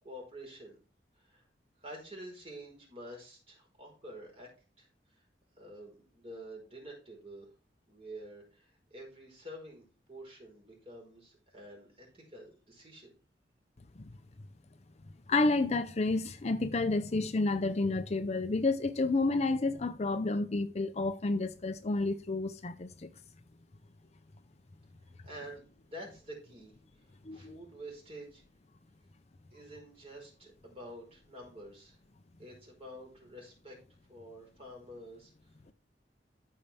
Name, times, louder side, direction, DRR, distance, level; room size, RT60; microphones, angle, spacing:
voice 1, 0.0-0.8 1.1-1.5 1.8-4.5 4.8-5.2 5.6-7.5 7.9-13.1 25.0-28.4 29.5-32.0 32.4-33.8 34.1-35.5, right 1 dB, 35° right, 5.0 m, -49 dB
voice 2, 15.3-23.1 27.2-27.6, left 3 dB, 40° left, 0.6 m, -30 dB
14.0 x 5.5 x 3.5 m
head